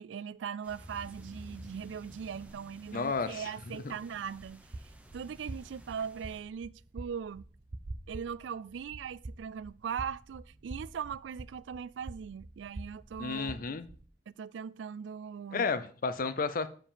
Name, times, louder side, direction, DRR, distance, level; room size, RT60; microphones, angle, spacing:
voice 1, 0.0-4.7 5.1-7.5 8.1-13.7 14.4-15.9, right 7 dB, 90° right, 0.3 m, -40 dB
sound 1, 0.6-6.4, equal, 10° right, 0.9 m, -52 dB
voice 2, 2.9-3.5 13.2-13.9 15.5-16.7, left 4 dB, 50° left, 0.6 m, -32 dB
sound 2, 4.2-14.1, right 2 dB, 45° right, 0.6 m, -47 dB
7.6 x 4.9 x 5.0 m
head